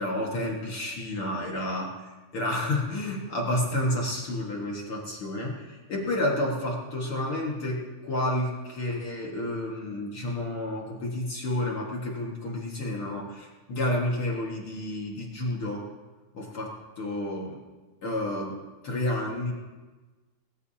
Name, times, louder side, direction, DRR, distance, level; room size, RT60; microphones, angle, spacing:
voice 1, 0.0-15.8 16.3-17.6 18.0-18.6 18.8-19.5, left 1 dB, 50° left, -2 dB, 1.8 m, -30 dB
19.5 x 17.5 x 2.8 m, 1.3 s
omnidirectional pair, 4.6 m